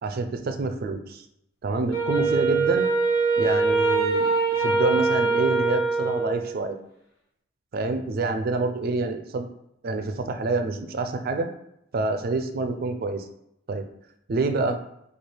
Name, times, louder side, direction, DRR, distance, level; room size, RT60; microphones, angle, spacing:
voice 1, 0.0-1.2 1.6-2.9 3.4-4.3 4.6-6.8 7.7-9.5 9.8-11.5 11.9-13.3 13.7-13.8 14.3-14.8, right 3 dB, 45° right, 7 dB, 0.3 m, -27 dB
Wind instrument woodwind instrument, 1.9-6.6, right 3 dB, 60° left, 1.2 m, -23 dB
3.2 x 2.4 x 4.4 m, 0.80 s
head